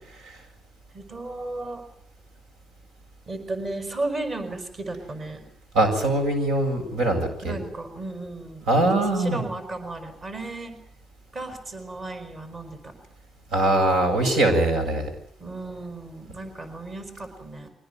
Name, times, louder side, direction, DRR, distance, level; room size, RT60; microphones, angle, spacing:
voice 1, 0.9-1.8 3.3-5.4 7.4-8.7 9.1-10.7 11.3-12.9 15.4-17.7, right 2 dB, 40° right, 7 dB, 5.3 m, -34 dB
voice 2, 5.7-7.6 8.7-9.4 13.5-15.1, right 1 dB, 85° right, 5 dB, 7.5 m, -22 dB
23.5 x 19.0 x 9.3 m, 0.66 s
cardioid pair, 90°, 0 cm